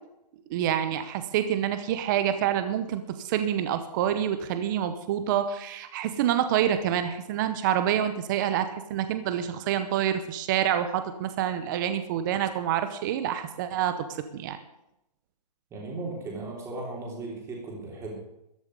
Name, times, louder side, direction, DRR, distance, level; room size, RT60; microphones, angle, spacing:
voice 1, 0.5-14.6, right 10 dB, 30° right, 10 dB, 0.9 m, -27 dB
voice 2, 15.7-18.2, right 2 dB, 15° right, -1 dB, 3.5 m, -36 dB
14.0 x 7.2 x 9.5 m, 0.85 s
hypercardioid pair, 160°, 21 cm